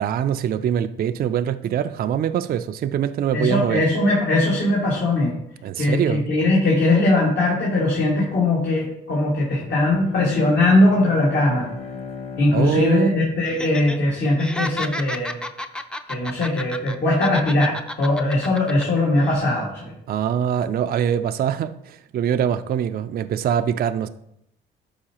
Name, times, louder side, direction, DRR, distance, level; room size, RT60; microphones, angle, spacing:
voice 1, 0.0-3.9 5.6-6.3 12.5-13.1 20.1-24.1, right 9 dB, 50° right, 0.4 m, -23 dB
voice 2, 3.3-5.3 5.8-11.7 12.4-15.4 16.1-19.9, left 2 dB, 60° left, 2.1 m, -20 dB
Bowed string instrument, 9.5-14.3, left 5 dB, 30° left, 1.2 m, -37 dB
Laughter, 13.5-14.0 14.3-17.0 17.2-18.8 19.2-19.4, left 1 dB, 5° left, 0.5 m, -31 dB
12.0 x 4.7 x 2.9 m
cardioid pair, 90°, 20 cm